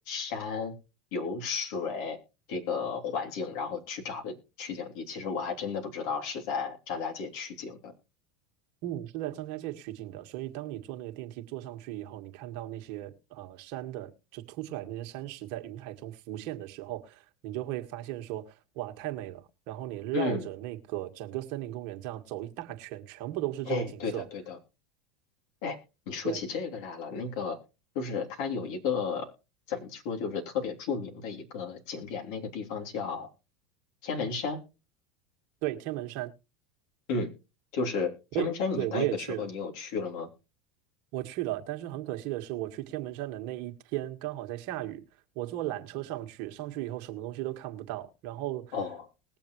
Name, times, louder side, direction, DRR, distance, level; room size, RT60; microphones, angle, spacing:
voice 1, 0.1-0.7 1.1-2.2 2.5-7.9 20.1-20.5 23.7-24.6 25.6-25.8 26.1-27.6 27.9-29.3 29.7-33.3 34.0-34.6 37.1-37.3 37.7-40.3 48.7-49.1, left 5 dB, 65° left, 3.2 m, -33 dB
voice 2, 8.8-24.3 26.2-26.4 35.6-36.3 38.3-38.5 38.8-39.5 41.1-45.0 45.4-48.8, right 15 dB, 60° right, 1.7 m, -36 dB
20.5 x 7.1 x 3.1 m
hypercardioid pair, 90°, 2 cm